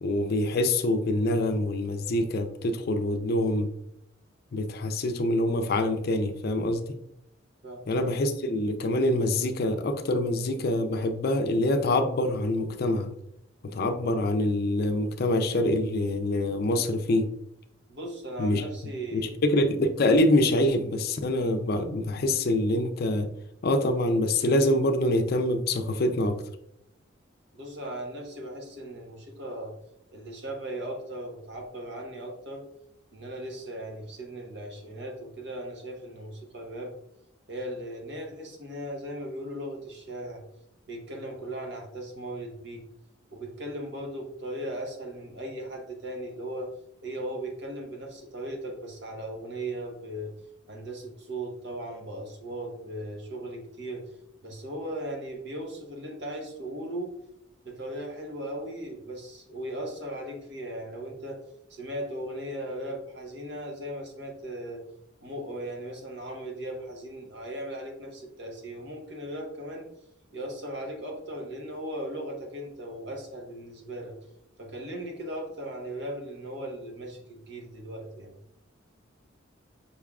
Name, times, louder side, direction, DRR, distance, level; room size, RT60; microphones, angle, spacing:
voice 1, 0.0-3.7 4.5-7.0 7.9-13.1 13.6-17.3 18.4-18.6 19.1-23.3 23.6-26.4, left 1 dB, 50° left, 7 dB, 0.4 m, -25 dB
voice 2, 17.9-19.3 27.5-29.7 30.1-32.7 33.1-36.9 37.5-40.4 40.9-42.8 43.3-46.7 47.0-50.3 50.7-54.0 54.4-57.1 57.6-61.4 61.7-64.8 65.2-69.9 70.3-74.1 74.6-78.3, right 1 dB, 60° right, 1 dB, 1.0 m, -37 dB
5.4 x 3.5 x 2.3 m, 0.78 s
head